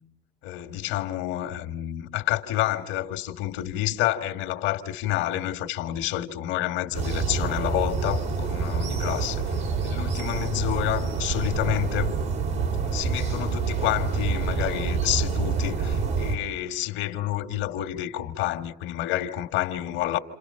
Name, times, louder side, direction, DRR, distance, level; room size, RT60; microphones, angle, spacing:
voice 1, 0.4-12.2 12.9-20.2, left 14 dB, 75° left, 2.1 m, -29 dB
sound 1, 6.9-16.4, right 5 dB, 65° right, 5.6 m, -27 dB
29.0 x 28.0 x 5.8 m
supercardioid pair, 95°, 21 cm